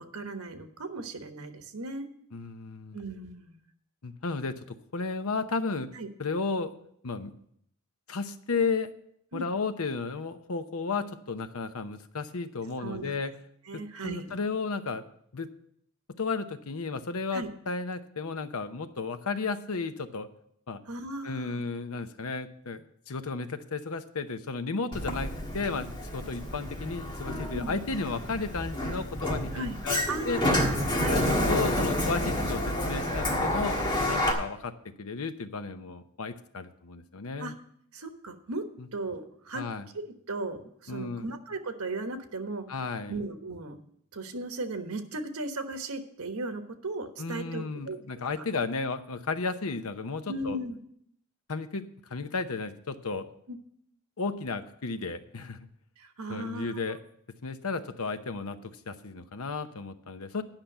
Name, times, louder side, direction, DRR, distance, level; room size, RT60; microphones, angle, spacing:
voice 1, 0.0-2.1 2.9-3.6 5.9-6.1 9.3-9.5 12.8-13.1 13.6-14.3 17.3-17.5 20.9-21.6 27.5-27.8 29.5-31.3 37.4-37.5 37.9-38.6 38.9-39.6 39.9-42.8 43.0-43.8 44.1-48.0 50.3-50.8 53.5-53.6 56.0-57.0, right 2 dB, 85° right, 7 dB, 1.3 m, -37 dB
voice 2, 2.3-3.0 4.0-5.9 6.2-6.7 7.0-7.3 8.1-8.9 9.3-13.3 13.7-15.0 15.3-15.5 16.2-20.3 20.7-20.8 21.2-30.4 31.1-34.7 35.0-37.5 38.8-38.9 39.5-39.8 40.9-41.3 42.7-43.2 47.2-50.6 51.5-51.8 52.1-53.3 54.2-55.6 56.3-57.0 57.4-60.4, left 4 dB, 80° left, 10 dB, 0.8 m, -33 dB
Sliding door, 24.9-34.3, left 1 dB, 20° left, 1.6 m, -29 dB
10.5 x 5.8 x 8.0 m, 0.69 s
head